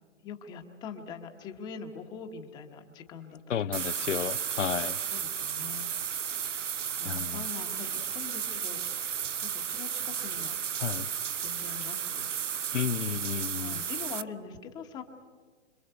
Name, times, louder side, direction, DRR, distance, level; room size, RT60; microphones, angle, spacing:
voice 1, 0.2-3.4 3.7-3.8 5.1-5.9 7.0-9.1 9.4-10.5 11.4-12.3 13.5-15.0, left 6 dB, 10° left, 6 dB, 1.1 m, -43 dB
voice 2, 3.5-5.0 7.0-7.5 10.8-11.1 12.7-13.8, left 8 dB, 85° left, 18 dB, 0.8 m, -32 dB
sound 1, 3.7-14.2, right 8 dB, 85° right, 1.0 m, -33 dB
26.5 x 25.5 x 8.1 m, 1.5 s
hypercardioid pair, 160°, 36 cm